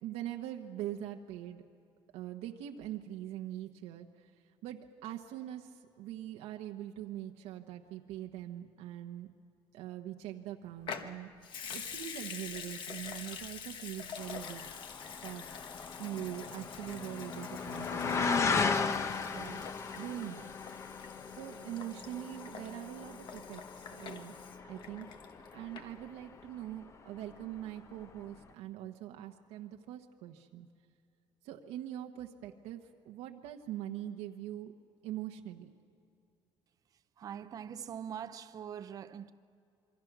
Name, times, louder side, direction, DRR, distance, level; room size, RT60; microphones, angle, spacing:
voice 1, 0.0-1.6 2.1-4.3 4.6-9.3 9.7-11.3 11.7-14.7 15.2-15.5 16.0-18.7 19.3-19.7 20.0-20.5 21.3-24.3 24.7-25.1 25.5-30.7 31.4-34.7 35.0-35.7, right 12 dB, 90° right, 1.2 m, -43 dB
Water tap faucet / Sink (filling or washing) / Liquid, 10.8-25.5 25.8-25.9, left 7 dB, 50° left, 1.2 m, -46 dB
sound 1, 14.2-26.6 26.9-27.5 28.0-28.1, left 5 dB, 30° left, 0.9 m, -37 dB
voice 2, 37.2-39.3, right 8 dB, 35° right, 0.6 m, -43 dB
27.0 x 23.5 x 6.1 m
cardioid pair, 160°, 10 cm